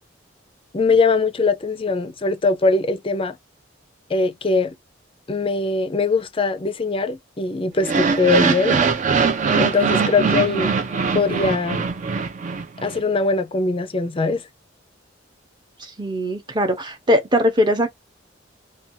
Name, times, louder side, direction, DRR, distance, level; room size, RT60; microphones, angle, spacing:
voice 1, 0.7-3.4 4.1-4.8 5.3-8.8 9.6-10.7 11.1-11.9 12.8-14.5, left 3 dB, 30° left, 0.5 m, -21 dB
sound 1, 7.8-13.0, right 5 dB, 40° right, 0.5 m, -21 dB
voice 2, 16.0-17.9, equal, 25° right, 0.8 m, -20 dB
2.6 x 2.3 x 2.7 m
head